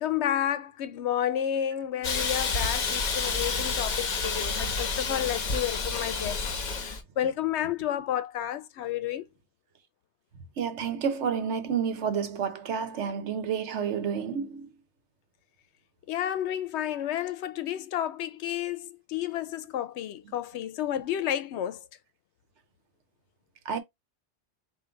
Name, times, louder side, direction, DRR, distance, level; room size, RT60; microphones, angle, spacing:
voice 1, 0.0-6.4 6.8-9.3 16.1-21.8, left 11 dB, 80° left, 0.8 m, -31 dB
Hiss, 2.0-7.0, left 4 dB, 45° left, 0.9 m, -29 dB
voice 2, 10.6-14.7 23.7-23.8, right 7 dB, 85° right, 1.1 m, -30 dB
3.8 x 2.6 x 4.3 m
omnidirectional pair, 1.1 m